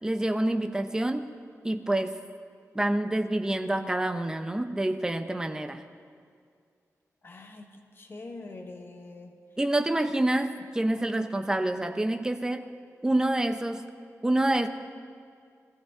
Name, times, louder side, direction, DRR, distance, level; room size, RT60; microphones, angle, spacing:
voice 1, 0.0-1.3 1.6-2.2 2.7-5.8 9.6-12.7 13.0-13.9 14.2-14.7, right 1 dB, 10° right, 7 dB, 0.7 m, -27 dB
voice 2, 7.2-9.4, left 2 dB, 40° left, 3 dB, 1.3 m, -44 dB
19.5 x 15.0 x 3.8 m, 2.2 s
wide cardioid pair, 135°, 6 cm